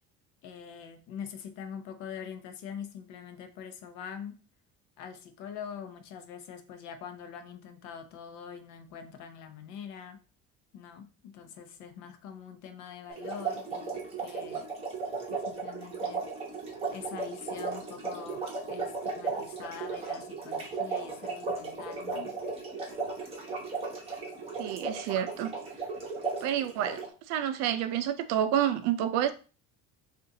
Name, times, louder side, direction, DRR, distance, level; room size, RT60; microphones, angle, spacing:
voice 1, 0.4-4.4 5.0-10.2 10.7-14.6 15.3-16.2 16.9-22.4, left 7 dB, 65° left, 0.7 m, -44 dB
sound 1, 13.1-27.1, right 4 dB, 20° right, 1.0 m, -36 dB
voice 2, 24.6-25.5 26.4-27.0 27.3-29.3, right 10 dB, 55° right, 0.5 m, -29 dB
6.4 x 2.5 x 2.7 m
cardioid pair, 175°, 31 cm